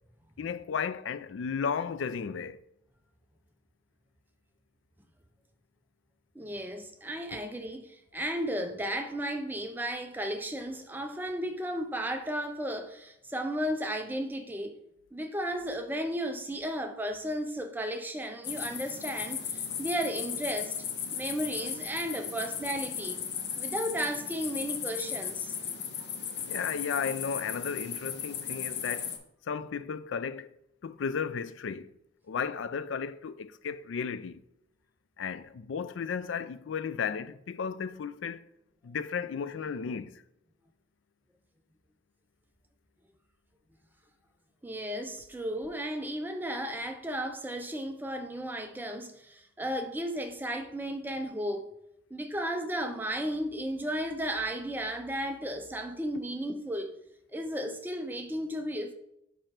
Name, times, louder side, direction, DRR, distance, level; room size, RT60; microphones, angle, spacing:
voice 1, 0.4-2.6 26.5-29.2 29.5-30.5 30.8-31.9 32.3-34.4 35.2-38.4 38.8-40.2, left 6 dB, 80° left, 0.4 m, -34 dB
voice 2, 6.3-14.8 15.1-20.7 21.1-23.2 23.6-25.5 44.6-51.7 52.1-57.0 57.3-58.9, equal, 10° right, 0.5 m, -34 dB
sound 1, 18.4-29.2, left 8 dB, 60° left, 0.7 m, -36 dB
5.3 x 4.8 x 4.4 m
head